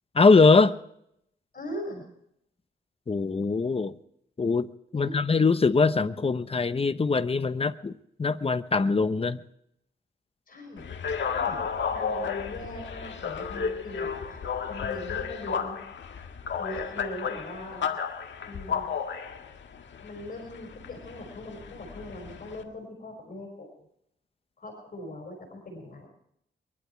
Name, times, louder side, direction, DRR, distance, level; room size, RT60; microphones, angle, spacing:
voice 1, 0.1-0.8 3.1-3.9 4.4-7.9 8.2-9.4, left 4 dB, 30° left, 12 dB, 0.9 m, -22 dB
voice 2, 1.5-2.1 4.9-5.1 10.5-10.8 11.2-15.9 16.6-17.8 18.4-19.2 20.0-23.9 24.6-26.1, left 1 dB, 45° left, 2 dB, 5.0 m, -41 dB
sound 1, 10.8-22.6, left 6 dB, 70° left, 1.8 m, -33 dB
22.5 x 12.0 x 4.5 m, 0.75 s
cardioid pair, 85°, 19 cm